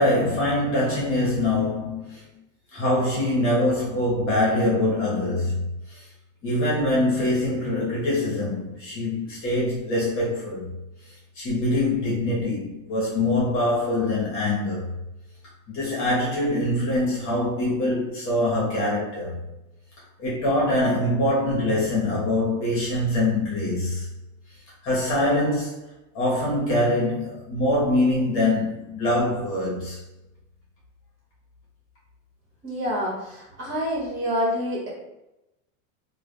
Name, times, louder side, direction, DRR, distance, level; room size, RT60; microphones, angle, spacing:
voice 1, 0.0-2.2 2.7-6.0 6.4-10.7 11.0-14.9 15.7-19.4 20.2-24.1 24.8-25.8 26.1-30.0, left 1 dB, 30° left, 1.1 m, -24 dB
voice 2, 32.6-34.9, equal, 30° right, 1.5 m, -27 dB
3.4 x 2.3 x 2.3 m
supercardioid pair, 140°, 40 cm